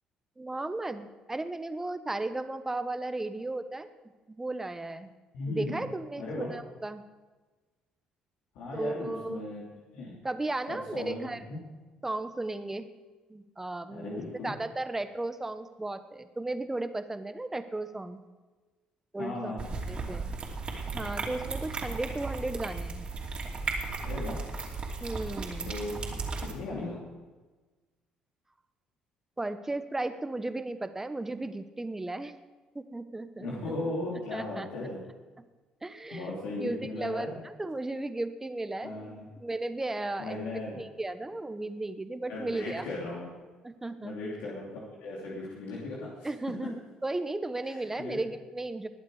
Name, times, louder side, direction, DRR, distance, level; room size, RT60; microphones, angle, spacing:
voice 1, 0.4-3.9 4.3-5.1 5.5-7.0 8.7-9.4 10.2-11.4 12.0-12.9 13.3-18.2 19.1-19.5 19.9-20.3 20.9-23.1 25.0-25.8 29.4-32.3 32.7-33.7 34.3-34.7 35.8-36.3 36.6-38.9 39.4-40.4 40.8-42.9 43.6-44.1 46.2-46.7 47.0-48.9, right 2 dB, 15° right, 10 dB, 1.1 m, -35 dB
voice 2, 5.3-5.8 6.2-6.5 8.5-9.6 9.9-10.1 10.7-11.6 13.9-14.5 19.2-19.9 24.0-24.4 25.6-26.0 26.4-27.0 33.4-35.0 36.1-37.4 38.8-39.3 40.2-40.8 42.3-43.3 44.0-46.3 47.7-48.2, left 2 dB, 80° left, -5 dB, 3.0 m, -37 dB
Cat eats, 19.6-26.5, right 3 dB, 40° right, 2.9 m, -35 dB
20.5 x 8.2 x 5.0 m, 1.3 s
supercardioid pair, 75°, 3 cm